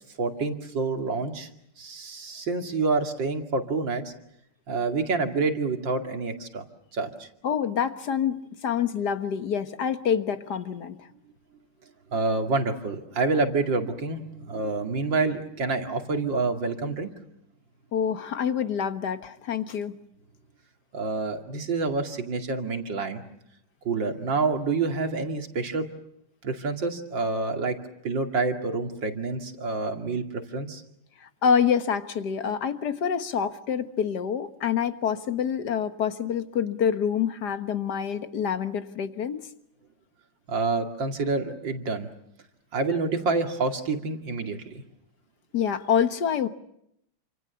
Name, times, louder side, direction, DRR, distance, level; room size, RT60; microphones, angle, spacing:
voice 1, 0.2-1.5 1.8-4.1 4.7-6.6 6.9-7.3 12.1-17.1 20.9-23.2 23.8-25.8 26.4-27.7 28.0-30.8 40.5-42.1 42.7-44.8, right 3 dB, 65° right, 5 dB, 3.1 m, -27 dB
voice 2, 7.4-11.0 17.9-19.9 31.4-39.4 45.5-46.5, left 7 dB, 55° left, 10 dB, 1.8 m, -26 dB
28.5 x 26.5 x 7.0 m, 0.76 s
omnidirectional pair, 2.2 m